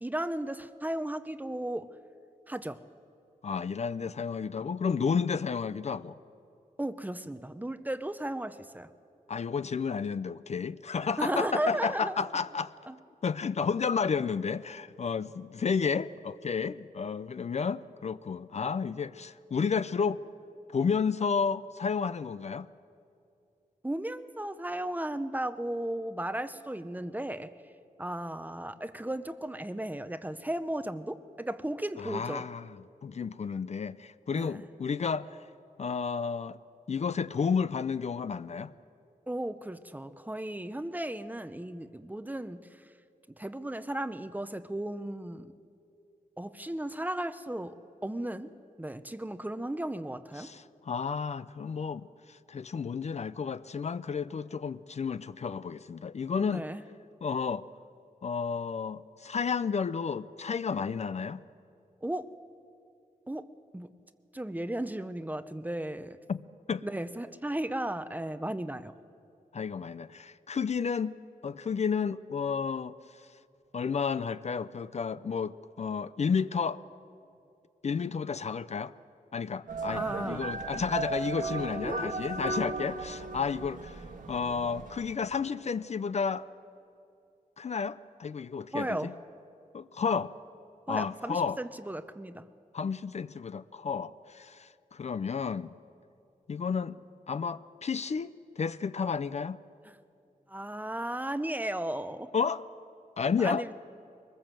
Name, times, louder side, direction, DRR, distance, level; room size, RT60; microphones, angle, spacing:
voice 1, 0.0-1.9 2.5-2.8 6.8-8.9 11.2-12.2 12.9-13.0 23.8-27.5 28.0-32.5 34.3-34.7 39.3-42.6 43.4-45.5 46.4-47.8 48.0-48.5 48.8-50.5 56.4-56.8 62.0-62.3 63.3-63.5 63.7-63.9 64.3-66.2 66.8-68.9 79.9-80.5 81.8-82.3 88.7-89.1 90.9-92.4 100.5-102.3 103.4-103.7, right 1 dB, 10° right, 12 dB, 0.7 m, -35 dB
voice 2, 3.4-6.2 9.3-12.7 13.2-20.2 20.7-22.7 32.0-32.6 33.0-35.4 35.8-36.6 36.9-38.7 50.4-56.6 57.2-57.6 58.2-61.4 66.3-66.4 66.7-66.8 69.5-71.2 71.4-72.9 73.7-76.8 77.8-78.9 79.3-84.0 84.3-86.4 87.6-89.1 89.7-90.3 90.9-91.6 92.7-95.7 96.5-97.0 97.3-99.6 102.3-102.6 103.2-103.6, left 6 dB, 50° left, 14 dB, 0.5 m, -31 dB
sound 1, 79.7-85.1, right 3 dB, 65° right, 1.5 m, -36 dB
23.0 x 20.0 x 7.6 m, 2.6 s
wide cardioid pair, 130°, 15 cm